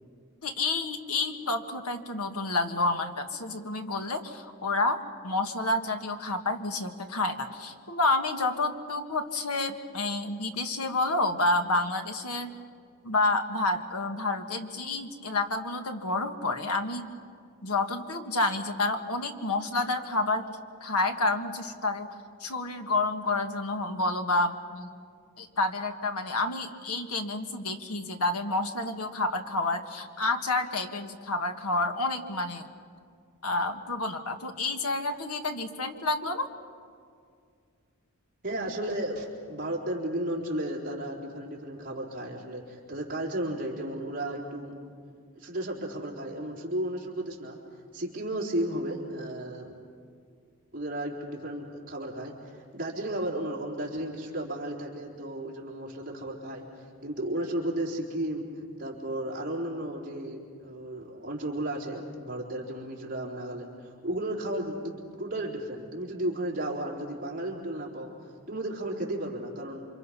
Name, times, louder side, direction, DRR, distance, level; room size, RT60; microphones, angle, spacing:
voice 1, 0.4-12.5 13.0-17.1 17.6-20.5 20.8-22.1 22.4-24.9 25.4-32.7 33.4-36.5, left 2 dB, 90° left, 5 dB, 1.7 m, -29 dB
voice 2, 38.4-44.8 45.4-47.6 47.9-49.7 50.7-56.6 57.0-58.5 58.8-69.8, right 1 dB, 40° right, -3 dB, 3.9 m, -34 dB
28.5 x 25.5 x 5.7 m, 2.2 s
head